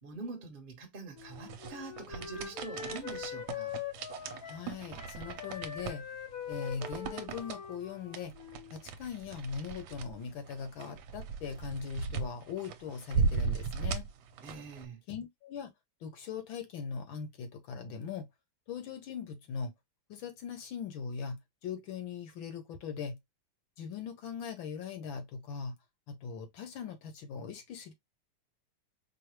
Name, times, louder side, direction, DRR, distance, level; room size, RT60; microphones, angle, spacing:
voice 1, 0.0-3.7 14.4-15.0, right 3 dB, 30° right, 1.0 m, -44 dB
Wind instrument woodwind instrument, 1.1-4.7 4.9-8.8, left 8 dB, 55° left, 1.1 m, -43 dB
sound 1, 1.2-14.9, right 5 dB, 70° right, 1.3 m, -38 dB
voice 2, 4.5-6.1 6.5-8.3 8.7-14.1 15.1-15.7 16.0-18.3 18.7-19.7 20.1-23.2 23.8-25.8 26.1-27.9, left 6 dB, 70° left, 1.5 m, -40 dB
4.8 x 2.3 x 3.0 m
omnidirectional pair, 2.4 m